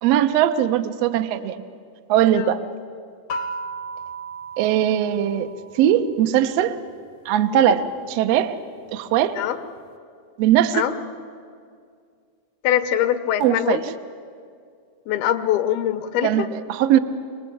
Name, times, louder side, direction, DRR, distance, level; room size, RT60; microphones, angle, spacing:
voice 1, 0.0-1.6 2.1-2.6 4.6-6.8 7.2-8.6 8.9-9.4 10.4-10.8 13.4-13.8 16.2-17.0, right 11 dB, 80° right, 9 dB, 1.5 m, -20 dB
sound 1, 3.3-6.0, right 2 dB, 70° left, 1.5 m, -34 dB
voice 2, 12.6-13.8 15.1-16.5, left 11 dB, 85° left, 9 dB, 3.0 m, -23 dB
26.5 x 20.0 x 8.6 m, 2.2 s
omnidirectional pair, 4.2 m